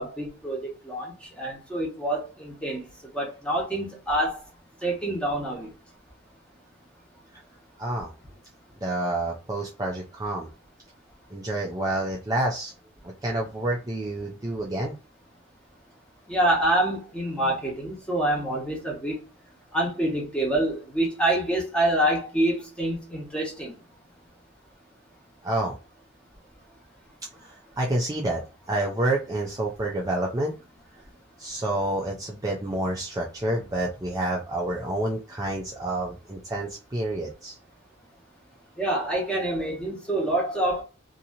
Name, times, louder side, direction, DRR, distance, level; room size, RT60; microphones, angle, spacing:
voice 1, 0.0-2.9 3.1-4.4 4.8-5.7 16.3-19.2 19.7-23.7 38.8-40.8, right 1 dB, 5° left, 1.2 m, -26 dB
voice 2, 7.8-8.1 8.8-10.5 11.3-12.7 13.0-15.0 25.4-25.7 27.4-28.4 28.7-30.5 31.4-37.6, right 1 dB, 20° right, 0.5 m, -28 dB
2.8 x 2.7 x 2.5 m
head